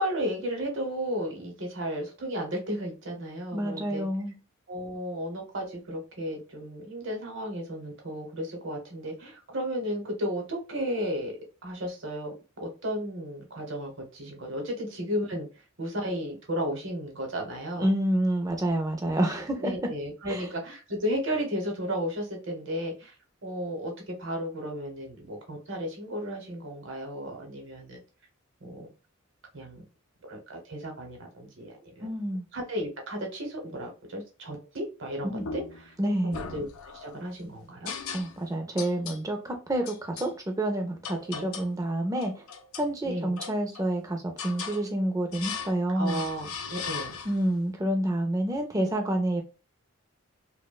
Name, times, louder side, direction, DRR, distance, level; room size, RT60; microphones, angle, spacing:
voice 1, 0.0-4.1 4.7-11.3 11.6-15.5 15.8-17.9 19.6-23.1 23.4-28.0 28.6-28.9 29.5-29.8 30.3-32.1 32.5-36.0 36.2-36.7 36.9-37.9 41.3-41.5 43.0-43.3 45.9-47.1, equal, 55° right, 0.8 m, -34 dB
voice 2, 3.5-4.4 17.8-19.7 20.3-20.4 32.0-32.4 35.2-35.4 36.0-36.4 38.1-42.4 42.8-46.2 47.3-49.4, right 1 dB, 15° right, 0.4 m, -28 dB
sound 1, 35.4-35.9 36.3-37.2 37.8-38.5 38.8-39.2 39.8-40.3 41.0-41.8 42.2-42.9 43.4-44.0 44.4-44.8 45.3-45.8 46.0-47.5, left 5 dB, 70° left, 0.4 m, -38 dB
2.7 x 2.1 x 2.2 m
head